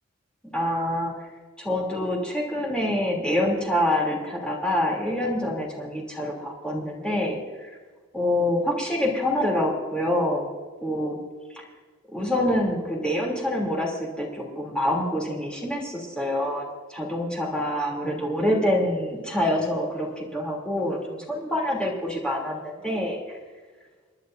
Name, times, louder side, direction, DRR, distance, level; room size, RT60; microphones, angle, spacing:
voice 1, 0.5-1.1 1.6-7.7 8.1-10.5 10.8-11.2 11.5-11.6 12.1-23.4, left 1 dB, 5° left, -3 dB, 3.0 m, -26 dB
30.0 x 10.5 x 2.7 m, 1.4 s
head